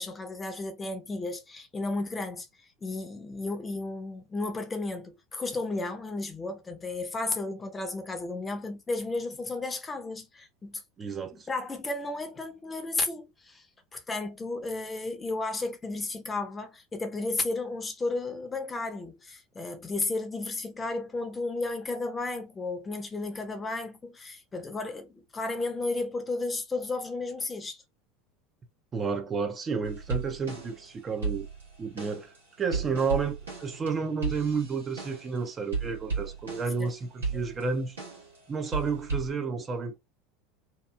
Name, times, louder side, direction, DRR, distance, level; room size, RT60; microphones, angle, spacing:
voice 1, 0.0-2.5 2.8-10.8 11.5-13.7 13.9-27.8 36.8-36.9, left 3 dB, 20° left, 0.6 m, -33 dB
voice 2, 11.0-11.5 28.9-31.5 31.8-38.0 38.5-40.0, right 5 dB, 30° right, 0.5 m, -31 dB
sound 1, 29.8-30.9 31.2-35.4 35.7-36.9 37.2-38.4 38.7-39.3, right 5 dB, 85° right, 1.2 m, -35 dB
2.8 x 2.3 x 2.2 m
hypercardioid pair, 80°, 0 cm